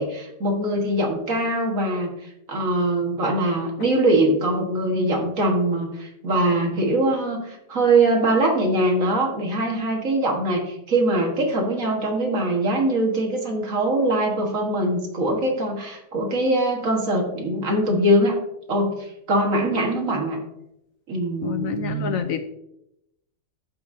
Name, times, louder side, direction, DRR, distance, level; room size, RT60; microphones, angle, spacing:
voice 1, 0.0-2.1 2.5-18.4 18.7-18.9 19.3-20.4 21.1-22.2, right 1 dB, 50° right, 1 dB, 1.8 m, -22 dB
voice 2, 21.4-22.4, left 7 dB, 70° left, 9 dB, 0.8 m, -27 dB
13.5 x 5.8 x 2.6 m, 0.83 s
omnidirectional pair, 1.9 m